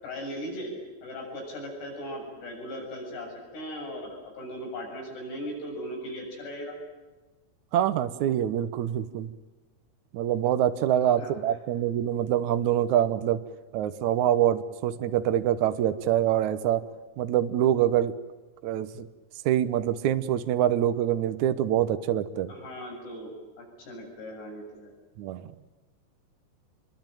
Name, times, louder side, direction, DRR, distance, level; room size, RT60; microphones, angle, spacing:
voice 1, 0.0-0.7 1.0-6.7 11.2-11.3 22.5-23.3 23.6-24.9, equal, 80° left, 1 dB, 9.4 m, -38 dB
voice 2, 7.7-9.3 10.1-13.4 13.7-16.8 17.2-18.1 18.6-19.1 19.4-22.5 25.2-25.5, right 11 dB, 75° right, 10 dB, 1.7 m, -25 dB
27.5 x 23.0 x 9.2 m, 1.2 s
omnidirectional pair, 4.7 m